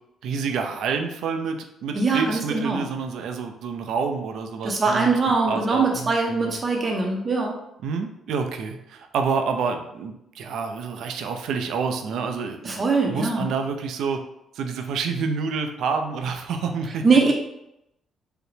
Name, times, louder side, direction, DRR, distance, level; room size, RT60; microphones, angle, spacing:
voice 1, 0.2-6.6 7.8-14.2 14.5-17.3, right 5 dB, 75° right, 5 dB, 0.5 m, -28 dB
voice 2, 1.9-2.9 4.6-7.6 12.6-13.5 17.0-17.3, right 4 dB, 35° right, 0 dB, 0.6 m, -22 dB
4.8 x 2.1 x 3.2 m, 0.82 s
cardioid pair, 90°, 0 cm